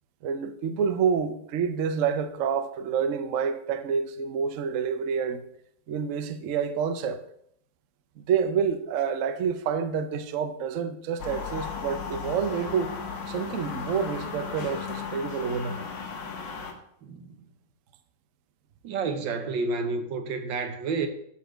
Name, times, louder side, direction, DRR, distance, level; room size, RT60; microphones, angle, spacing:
voice 1, 0.2-5.4 5.9-7.2 8.2-12.9 13.3-15.9, right 6 dB, 60° right, 0.9 m, -28 dB
sound 1, 11.2-16.7, left 6 dB, 90° left, 2.0 m, -35 dB
voice 2, 18.8-21.1, right 4 dB, 85° right, 1.8 m, -29 dB
12.5 x 4.3 x 6.2 m
omnidirectional pair, 2.0 m